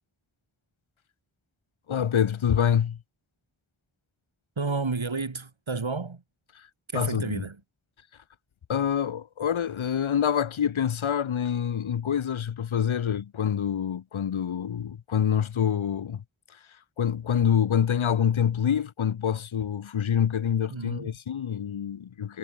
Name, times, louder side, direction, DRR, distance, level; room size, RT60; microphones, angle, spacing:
voice 1, 1.9-3.0 6.6-6.7 6.9-7.4 8.7-16.2 16.5-16.6 17.0-22.4, left 8 dB, 75° left, 0.8 m, -26 dB
voice 2, 4.6-6.2 6.9-7.6 20.7-21.1, right 4 dB, 70° right, 5.4 m, -31 dB
wide cardioid pair, 65°, 48 cm